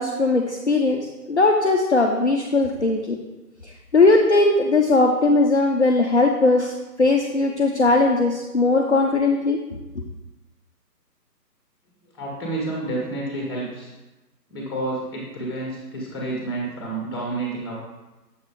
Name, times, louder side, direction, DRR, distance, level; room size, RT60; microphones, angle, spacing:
voice 1, 0.0-3.2 3.6-9.6, left 3 dB, 45° left, 1 dB, 0.5 m, -19 dB
voice 2, 12.0-13.9 14.5-17.7, right 2 dB, 15° left, -3 dB, 1.1 m, -29 dB
7.0 x 4.2 x 3.6 m, 1.1 s
figure-of-eight pair, 155°, 50 cm